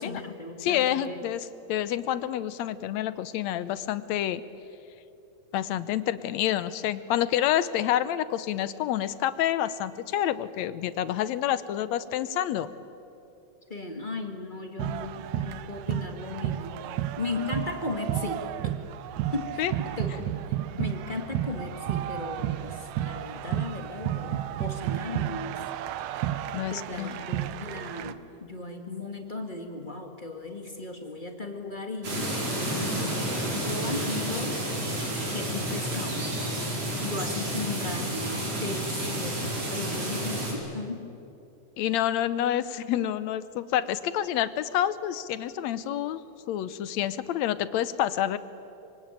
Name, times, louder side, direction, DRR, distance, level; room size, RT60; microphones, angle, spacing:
voice 1, 0.0-1.2 13.7-16.8 17.2-18.5 19.3-19.6 20.0-20.4 20.8-25.6 26.5-32.3 32.6-34.6 35.3-36.2 37.0-41.1, left 3 dB, 25° left, 4 dB, 1.2 m, -36 dB
voice 2, 0.6-4.4 5.5-12.7 19.6-19.7 26.5-27.2 41.8-46.2 46.5-48.4, left 11 dB, 75° left, 14 dB, 1.9 m, -28 dB
sound 1, 14.8-28.1, right 12 dB, 75° right, 2.0 m, -32 dB
sound 2, 32.0-40.5, right 1 dB, 55° right, 6.0 m, -30 dB
25.0 x 24.0 x 9.0 m, 2.8 s
omnidirectional pair, 3.6 m